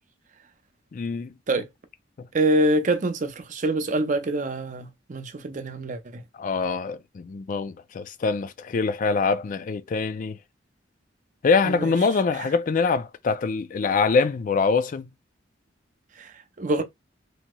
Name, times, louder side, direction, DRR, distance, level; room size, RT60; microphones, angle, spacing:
voice 1, 0.9-1.3 6.4-10.4 11.4-15.1, left 4 dB, 45° left, 0.3 m, -24 dB
voice 2, 2.3-6.2 11.6-11.9 12.4-12.5 16.2-16.3 16.6-16.8, right 1 dB, 45° right, 0.5 m, -25 dB
3.0 x 2.7 x 2.2 m
head